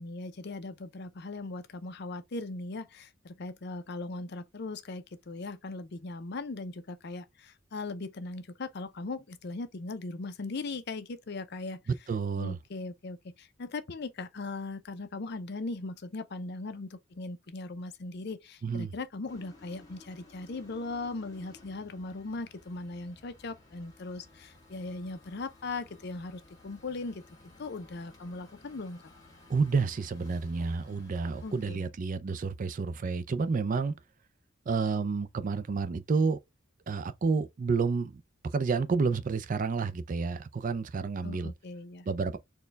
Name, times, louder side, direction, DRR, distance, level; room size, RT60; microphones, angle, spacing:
voice 1, 0.0-11.8 12.4-27.2 27.6-29.0 31.4-31.9 41.2-42.1, left 3 dB, 55° left, 0.5 m, -39 dB
voice 2, 12.1-12.6 18.6-18.9 29.5-33.9 34.7-36.4 36.9-38.2 38.5-41.5 42.1-42.4, right 4 dB, 40° right, 0.4 m, -30 dB
sound 1, 19.3-31.8, left 2 dB, 20° left, 1.3 m, -56 dB
4.4 x 2.2 x 3.3 m
head